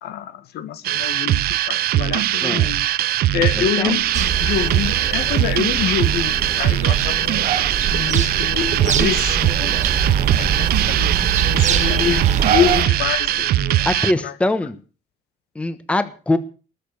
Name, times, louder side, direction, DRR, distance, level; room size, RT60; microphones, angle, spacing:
voice 1, 0.0-2.9 3.3-7.5 7.9-9.8 10.4-14.3, left 10 dB, 75° left, 1.8 m, -26 dB
sound 1, 0.8-14.1, right 14 dB, 65° right, 0.7 m, -21 dB
voice 2, 3.5-3.9 13.8-14.8 15.5-16.4, left 2 dB, 5° left, 1.1 m, -22 dB
Printer, 3.7-14.1, left 6 dB, 35° left, 1.9 m, -38 dB
sound 2, 4.1-12.9, right 8 dB, 45° right, 1.9 m, -23 dB
20.0 x 6.8 x 8.4 m
cardioid pair, 170°, 17 cm